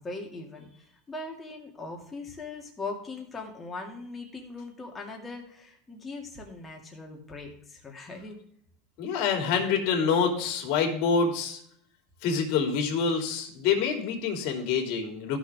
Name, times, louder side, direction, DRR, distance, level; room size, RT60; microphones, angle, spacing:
voice 1, 0.0-8.3, left 3 dB, 15° left, 0 dB, 2.3 m, -40 dB
voice 2, 9.0-11.6 12.2-15.4, left 5 dB, 55° left, 3 dB, 2.8 m, -26 dB
15.0 x 6.1 x 3.5 m, 0.65 s
supercardioid pair, 145°, 0 cm